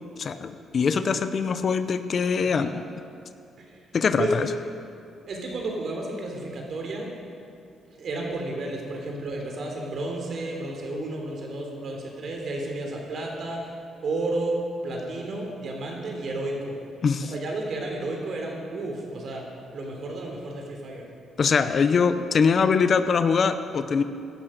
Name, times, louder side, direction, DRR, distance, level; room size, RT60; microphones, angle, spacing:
voice 1, 0.2-2.8 3.9-4.5 17.0-17.3 21.4-24.0, left 5 dB, 50° left, 11 dB, 0.7 m, -23 dB
voice 2, 2.4-2.8 3.6-3.8 4.2-4.4 5.3-7.1 7.9-13.7 14.0-16.8 17.2-19.4 19.7-21.1, right 2 dB, 55° right, 0 dB, 3.4 m, -32 dB
16.5 x 12.0 x 5.2 m, 2.5 s
cardioid pair, 90°, 0 cm